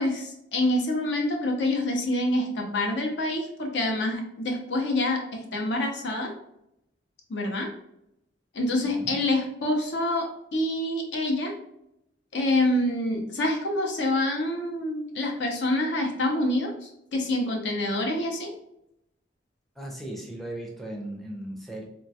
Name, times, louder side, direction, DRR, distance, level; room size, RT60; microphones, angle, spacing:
voice 1, 0.0-6.3 7.3-7.7 8.5-11.5 12.3-18.5, left 1 dB, 70° left, 1 dB, 0.6 m, -26 dB
voice 2, 8.8-9.2 19.8-21.8, right 1 dB, ahead, -2 dB, 0.4 m, -37 dB
3.0 x 2.2 x 2.6 m, 0.79 s
head